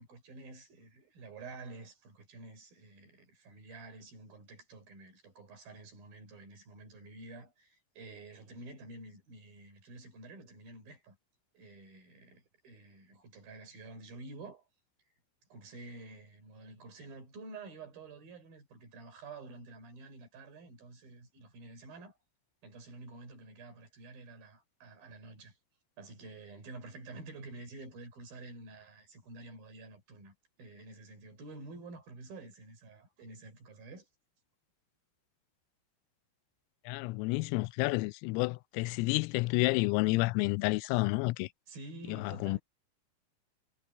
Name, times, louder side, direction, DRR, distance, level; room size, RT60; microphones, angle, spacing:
voice 1, 0.0-11.2 11.5-14.7 15.5-22.2 22.6-25.6 26.0-34.1 41.7-42.6, right 2 dB, 45° right, 6.2 m, -49 dB
voice 2, 36.9-41.5 42.1-42.6, left 23 dB, 90° left, 3.2 m, -30 dB
omnidirectional pair, 5.9 m